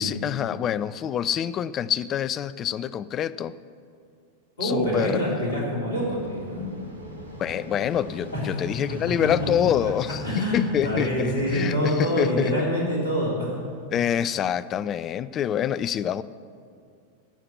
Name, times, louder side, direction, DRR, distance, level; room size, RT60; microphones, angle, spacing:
voice 1, 0.0-3.6 4.6-5.2 7.4-10.2 10.5-12.5 13.9-16.2, left 9 dB, 30° left, 17 dB, 0.4 m, -26 dB
voice 2, 4.6-6.7 8.3-8.6 9.1-9.2 9.8-9.9 10.2-13.6, equal, 65° left, -4 dB, 3.3 m, -26 dB
sound 1, 6.0-11.6, equal, 85° left, 2.3 m, -39 dB
17.5 x 5.8 x 7.9 m, 2.3 s
figure-of-eight pair, 90°, 0 cm